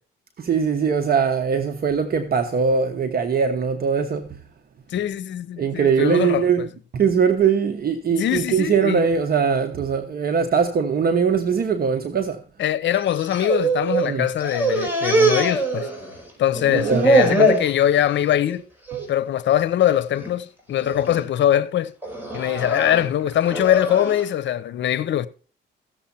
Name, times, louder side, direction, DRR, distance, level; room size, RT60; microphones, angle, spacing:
voice 1, 0.4-4.3 5.6-6.6 6.9-12.4 14.1-14.3 16.7-17.1, right 6 dB, 50° right, 1.2 m, -21 dB
voice 2, 4.9-6.7 8.1-9.1 12.6-15.9 16.4-18.7 19.1-21.9 22.3-25.3, left 11 dB, 65° left, 0.8 m, -22 dB
sound 1, 13.0-14.1 14.4-16.3 16.6-17.7 18.2-18.5 18.9-19.1 19.9-20.3 20.8-21.2 22.0-24.2, right 2 dB, 10° right, 4.6 m, -22 dB
16.0 x 7.2 x 4.3 m
cardioid pair, 90°, 20 cm